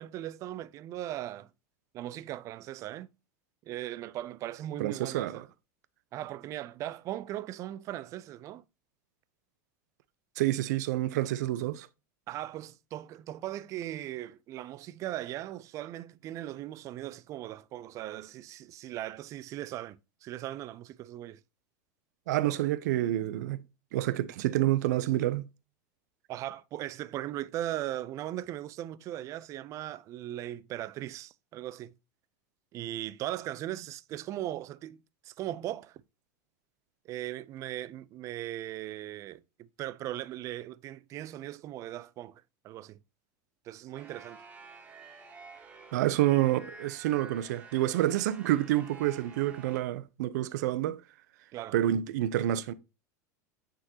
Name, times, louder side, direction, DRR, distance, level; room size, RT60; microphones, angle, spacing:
voice 1, 0.0-1.5 1.9-3.1 3.7-5.5 6.1-8.6 12.3-21.4 26.3-31.9 32.7-36.0 37.0-43.0 43.6-44.4 51.5-51.8, right 13 dB, 35° right, 0.4 m, -38 dB
voice 2, 4.8-5.4 10.4-11.9 22.3-23.6 23.9-25.5 45.9-51.0 51.7-52.7, right 14 dB, 80° right, 0.6 m, -28 dB
sound 1, 43.9-49.8, right 4 dB, 15° right, 1.5 m, -50 dB
9.0 x 3.8 x 2.8 m
supercardioid pair, 145°, 9 cm